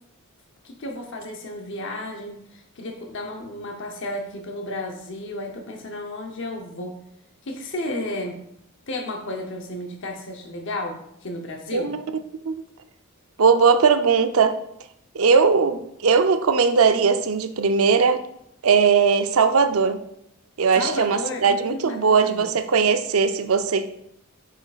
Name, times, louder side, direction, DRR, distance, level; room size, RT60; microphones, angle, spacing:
voice 1, 0.6-7.0 7.4-8.4 8.9-12.0 20.7-22.5, left 1 dB, 60° left, 2 dB, 0.8 m, -33 dB
voice 2, 11.7-12.0 12.5-12.6 13.4-14.6 15.1-18.3 18.6-20.0 20.6-23.9, right 5 dB, 75° right, 9 dB, 0.5 m, -19 dB
8.9 x 5.8 x 2.4 m, 0.77 s
head